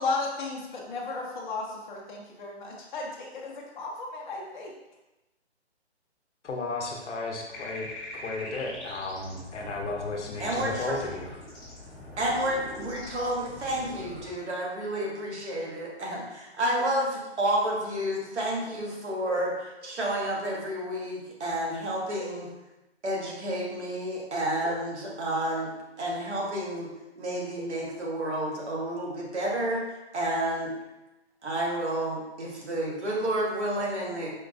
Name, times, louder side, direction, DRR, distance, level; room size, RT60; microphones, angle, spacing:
voice 1, 0.0-3.0 3.4-4.7, left 3 dB, 45° left, -3 dB, 0.7 m, -34 dB
voice 2, 6.5-11.4, left 3 dB, 90° left, 1 dB, 0.8 m, -34 dB
sound 1, 7.5-14.3, left 2 dB, 5° left, 0.6 m, -43 dB
voice 3, 10.4-11.0 12.2-22.5 23.0-25.7 26.0-26.9 27.2-29.9 30.1-30.7 31.4-34.3, right 1 dB, 75° right, -3 dB, 1.2 m, -30 dB
4.4 x 2.0 x 2.5 m, 0.99 s
hypercardioid pair, 160°, 34 cm